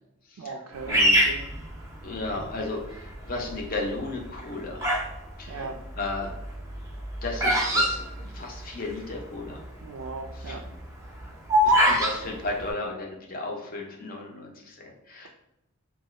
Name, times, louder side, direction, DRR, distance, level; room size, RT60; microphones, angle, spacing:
voice 1, 0.4-1.5 5.5-5.7 9.8-10.6, right 4 dB, 85° right, 3 dB, 0.3 m, -38 dB
Bird vocalization bird call bird song, 0.9-2.4 3.0-3.5 4.2-5.1 5.4-8.9 9.2-9.3 9.4-9.8 10.2-12.1, equal, 15° right, 0.5 m, -23 dB
voice 2, 2.0-4.9 5.4-5.7 6.0-6.4 7.2-8.0 8.3-9.6 10.3-10.6 11.6-15.3, left 2 dB, 40° left, 0 dB, 0.6 m, -34 dB
2.8 x 2.4 x 3.1 m, 0.89 s
head